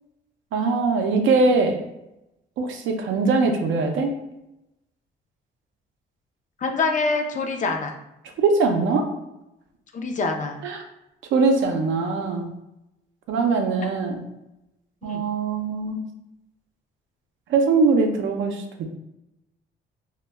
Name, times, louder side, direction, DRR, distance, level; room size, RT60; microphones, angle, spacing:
voice 1, 0.5-1.8 2.6-4.1 8.4-9.1 10.6-10.8 11.3-12.5 13.3-14.2 15.0-16.0 17.5-18.6, right 4 dB, 75° right, 4 dB, 0.5 m, -21 dB
voice 2, 6.6-7.9 9.9-10.6 15.0-15.3, left 3 dB, 40° left, 4 dB, 0.4 m, -25 dB
2.2 x 2.1 x 3.3 m, 0.89 s
cardioid pair, 90°, 20 cm